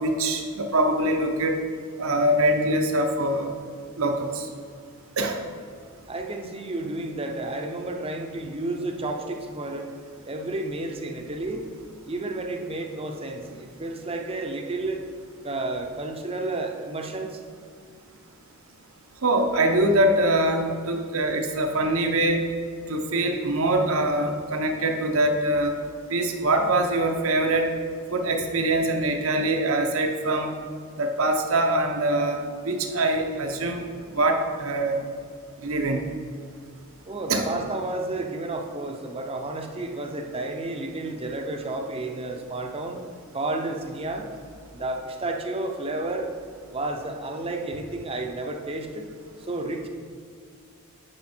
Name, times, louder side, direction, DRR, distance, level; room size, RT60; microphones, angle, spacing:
voice 1, 0.0-1.6 2.0-3.5 4.0-4.5 5.2-5.4 19.2-22.4 22.9-25.7 26.1-27.7 28.1-30.5 31.0-32.4 32.6-33.8 34.1-35.0 35.6-36.0 37.3-37.5, right 1 dB, 70° right, 4 dB, 0.9 m, -23 dB
voice 2, 6.1-9.9 10.2-11.7 12.1-15.0 15.4-17.4 37.1-43.0 43.3-44.3 44.7-46.3 46.7-49.1 49.5-49.9, right 2 dB, 25° right, 3 dB, 0.7 m, -31 dB
9.9 x 5.2 x 4.4 m, 2.1 s
head